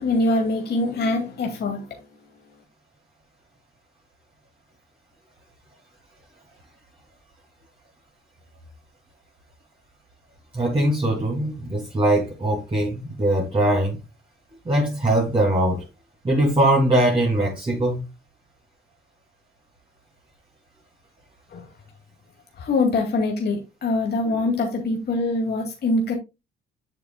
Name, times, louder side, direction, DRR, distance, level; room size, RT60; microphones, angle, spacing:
voice 1, 0.0-1.9 21.5-21.6 22.6-26.2, left 2 dB, 55° left, 2.3 m, -23 dB
voice 2, 10.5-14.0 14.6-15.8 16.2-18.0, right 1 dB, 25° right, 2.9 m, -21 dB
8.0 x 7.1 x 2.3 m
cardioid pair, 90°, 20 cm